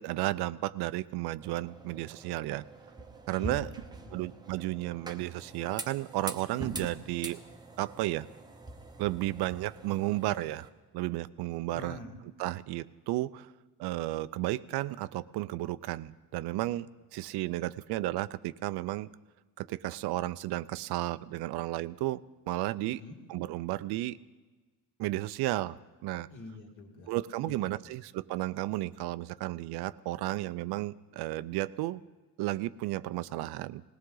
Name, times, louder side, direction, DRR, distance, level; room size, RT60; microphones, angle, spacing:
voice 1, 0.0-2.6 3.3-3.7 4.1-7.4 7.8-8.3 9.0-10.7 10.9-12.0 12.4-13.5 13.8-16.9 17.1-19.1 19.6-22.2 22.5-23.0 23.3-24.2 25.0-25.8 26.0-26.3 27.1-32.0 32.4-33.8, right 17 dB, 75° right, 15 dB, 0.6 m, -33 dB
sound 1, 1.4-10.7, right 2 dB, 10° right, 0.8 m, -44 dB
voice 2, 3.4-4.3 11.7-12.2 22.8-23.2 26.3-27.1 27.4-27.9, left 2 dB, 50° left, 2 dB, 2.2 m, -46 dB
20.0 x 17.5 x 3.9 m, 1.3 s
cardioid pair, 165°, 39 cm